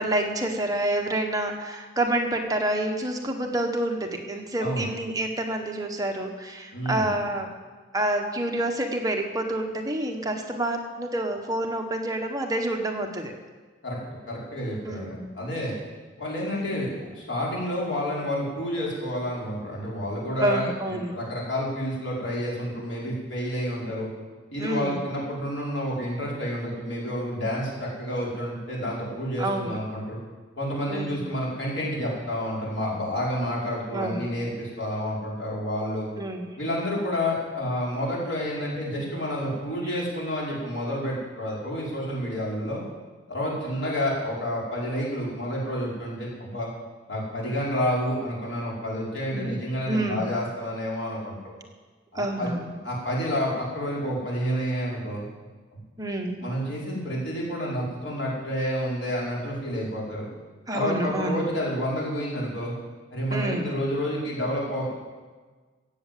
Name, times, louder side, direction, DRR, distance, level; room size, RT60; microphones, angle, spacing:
voice 1, 0.0-7.5 7.9-13.3 14.8-15.3 16.5-16.8 20.4-21.1 24.6-25.0 29.4-29.8 30.9-31.2 33.9-34.3 36.2-36.5 49.3-49.6 49.9-50.2 52.1-52.8 56.0-56.4 60.7-61.3 63.3-63.7, right 1 dB, 20° right, 2 dB, 1.4 m, -28 dB
voice 2, 6.7-7.1 13.8-14.0 14.3-15.7 16.2-24.1 24.5-30.2 30.6-36.1 36.6-42.8 43.3-46.7 47.1-51.4 52.1-52.5 52.8-55.3 55.7-55.8 56.4-60.3 60.7-62.7 63.1-64.9, equal, 80° left, -5 dB, 5.2 m, -29 dB
15.0 x 8.8 x 7.6 m, 1.4 s
head